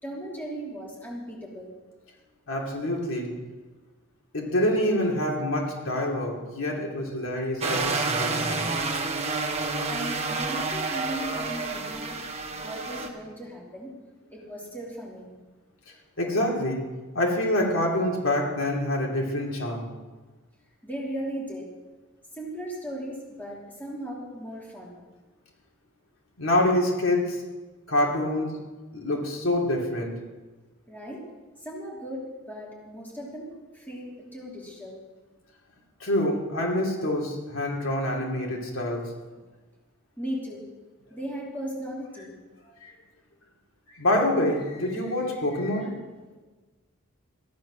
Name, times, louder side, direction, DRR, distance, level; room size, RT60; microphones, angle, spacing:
voice 1, 0.0-1.7 9.9-12.2 12.5-13.9 14.3-15.3 20.8-21.7 22.3-25.0 30.9-31.2 31.6-33.5 33.7-35.0 40.2-40.7 41.1-42.4, equal, 10° left, -4 dB, 3.0 m, -37 dB
voice 2, 2.5-3.3 4.3-8.6 16.2-16.8 17.1-19.9 26.4-27.4 27.9-28.6 28.9-30.1 36.0-39.1 42.8-42.9 43.9-45.9, left 1 dB, 70° left, -1 dB, 2.9 m, -26 dB
sound 1, 7.6-13.1, right 3 dB, 30° right, 1.4 m, -29 dB
15.0 x 10.5 x 6.4 m, 1.3 s
head